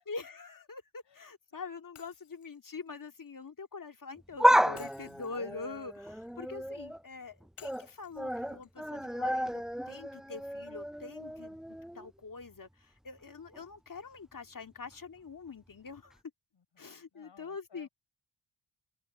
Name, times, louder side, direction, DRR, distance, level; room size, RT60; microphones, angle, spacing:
voice 1, 0.0-16.2 16.8-17.9, left 4 dB, 40° left, 2.4 m, -45 dB
Shatter, 2.0-4.0 4.8-6.9 7.6-9.7, left 10 dB, 80° left, 6.3 m, -60 dB
sound 1, 4.2-7.0 7.4-7.9 8.2-12.1 12.4-12.5 13.5-13.6, equal, ahead, 0.6 m, -31 dB
voice 2, 16.5-17.9, left 6 dB, 60° left, 6.0 m, -61 dB
supercardioid pair, 45°, 48 cm